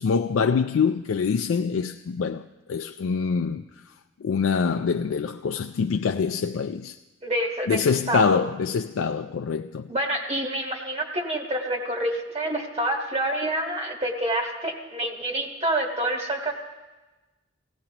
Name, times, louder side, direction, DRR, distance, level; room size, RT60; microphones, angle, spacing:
voice 1, 0.0-2.4 2.7-3.6 4.2-7.0 7.7-9.9, left 5 dB, 90° left, 0.4 m, -25 dB
voice 2, 7.2-7.8 8.1-8.4 9.9-16.5, right 1 dB, 30° right, 1.5 m, -27 dB
18.0 x 16.0 x 2.9 m
head